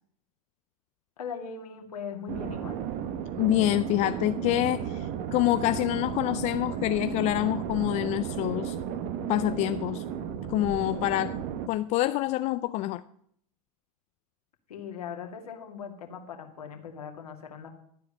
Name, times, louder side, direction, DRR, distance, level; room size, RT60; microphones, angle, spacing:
voice 1, 1.2-2.7 14.7-17.7, left 7 dB, 80° left, 2.2 m, -39 dB
sound 1, 2.3-11.7, right 8 dB, 45° right, 1.1 m, -34 dB
voice 2, 3.4-8.8 9.3-10.0 10.5-11.4 11.7-13.0, left 16 dB, 40° left, 0.4 m, -26 dB
12.5 x 4.9 x 8.7 m
hypercardioid pair, 105°, 19 cm